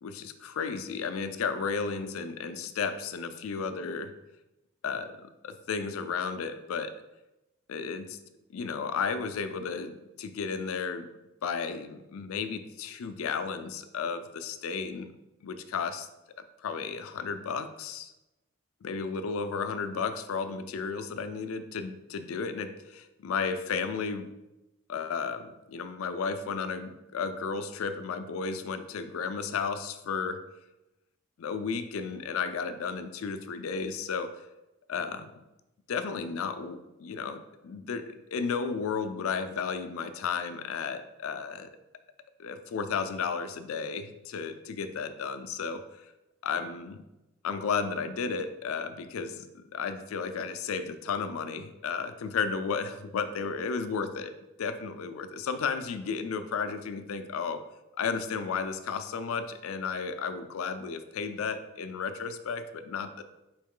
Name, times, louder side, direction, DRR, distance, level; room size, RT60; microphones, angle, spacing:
voice 1, 0.0-4.1 4.8-7.0 7.7-8.2 8.5-11.1 11.4-15.1 15.4-16.1 16.6-18.1 18.8-24.3 24.9-30.4 31.4-34.5 34.9-35.3 35.9-41.7 42.4-46.1 46.4-47.0 47.4-57.6 58.0-63.2, left 5 dB, 85° left, 10 dB, 0.4 m, -33 dB
4.6 x 3.0 x 3.7 m, 0.97 s
head